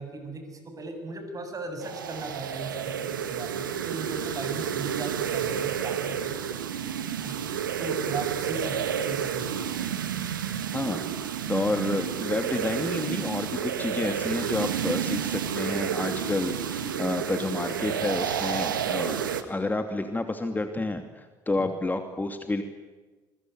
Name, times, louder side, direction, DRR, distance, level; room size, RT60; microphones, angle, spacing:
voice 1, 0.0-6.3 7.2-7.4 7.8-9.5, right 3 dB, 35° right, 7 dB, 7.7 m, -37 dB
sound 1, 1.8-19.4, right 8 dB, 85° right, 1.6 m, -30 dB
voice 2, 10.7-11.1 11.5-22.6, left 2 dB, 15° left, 7 dB, 2.6 m, -30 dB
27.0 x 23.0 x 9.4 m, 1.3 s
hypercardioid pair, 60°, 11 cm